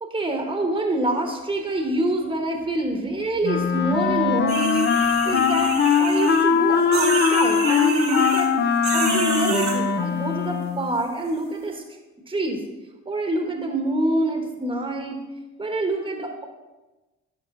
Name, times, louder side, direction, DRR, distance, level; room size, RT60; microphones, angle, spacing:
voice 1, 0.0-8.5 8.9-11.8 12.3-12.6 13.1-15.2 15.6-16.4, right 1 dB, 15° right, 3 dB, 1.3 m, -26 dB
Wind instrument woodwind instrument, 3.4-10.9, left 6 dB, 35° left, 0.7 m, -21 dB
sound 1, 4.5-6.4 6.9-8.5 8.8-9.8, right 4 dB, 65° right, 1.6 m, -29 dB
12.0 x 5.3 x 3.8 m, 1.1 s
cardioid pair, 90°, 30 cm